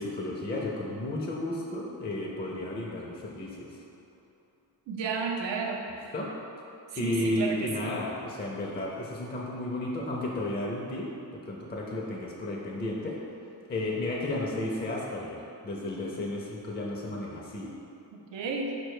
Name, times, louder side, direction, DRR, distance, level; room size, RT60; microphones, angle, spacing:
voice 1, 0.0-3.8 6.1-6.3 7.0-11.1 11.3-13.2 13.7-17.7, left 1 dB, 25° left, -3 dB, 0.4 m, -33 dB
voice 2, 4.9-6.1 6.9-7.9 18.3-18.8, right 4 dB, 85° right, 1 dB, 0.6 m, -32 dB
4.5 x 2.2 x 4.6 m, 2.7 s
cardioid pair, 90°, 42 cm